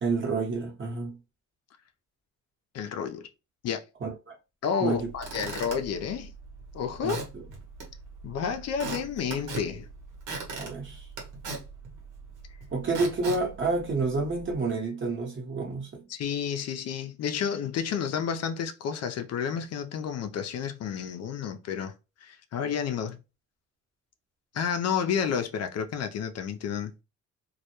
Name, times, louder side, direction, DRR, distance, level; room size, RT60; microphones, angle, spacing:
voice 1, 0.0-1.2 4.0-4.3 4.8-5.1 7.0-7.4 10.5-11.0 12.7-16.0, right 3 dB, 40° right, 1.0 m, -29 dB
voice 2, 2.7-3.3 3.6-3.8 4.6-6.3 6.7-7.2 8.2-9.9 16.1-21.9 22.2-23.2 24.5-26.9, left 7 dB, 55° left, 0.4 m, -30 dB
Squeak / Wood, 4.9-14.5, right 4 dB, 80° right, 1.0 m, -40 dB
2.2 x 2.1 x 2.8 m
cardioid pair, 90°, 30 cm